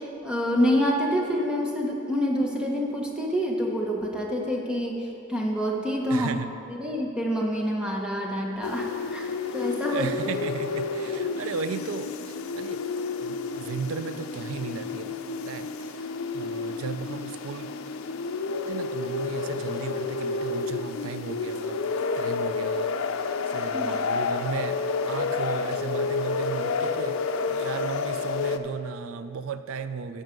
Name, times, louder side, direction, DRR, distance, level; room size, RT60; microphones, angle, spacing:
voice 1, 0.0-6.3 6.7-10.1 23.7-24.0, equal, 5° right, -1 dB, 1.0 m, -27 dB
voice 2, 6.1-6.5 9.9-12.8 13.2-17.7 18.7-24.8 25.1-27.2 27.5-30.2, right 5 dB, 80° right, 11 dB, 0.4 m, -35 dB
sound 1, 8.6-28.6, left 4 dB, 85° left, 0.5 m, -30 dB
12.0 x 6.5 x 5.2 m, 2.7 s
head